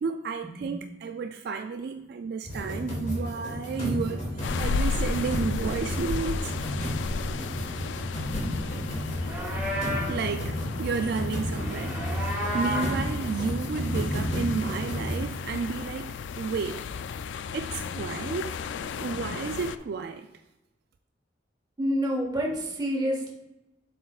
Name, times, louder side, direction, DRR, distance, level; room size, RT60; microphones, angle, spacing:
voice 1, 0.0-4.2 4.6-6.5 10.1-16.8 17.5-18.5 19.0-20.3, right 5 dB, 60° right, 6 dB, 0.3 m, -32 dB
sound 1, 2.4-15.2, equal, 40° left, 2.2 m, -32 dB
sound 2, 4.4-19.8, left 5 dB, 85° left, 0.3 m, -34 dB
Livestock farm animals working animals, 9.1-10.2 11.5-13.0, equal, 10° right, 2.0 m, -32 dB
voice 2, 21.8-23.3, equal, 25° right, -1 dB, 1.2 m, -28 dB
7.6 x 6.3 x 2.4 m, 0.98 s
head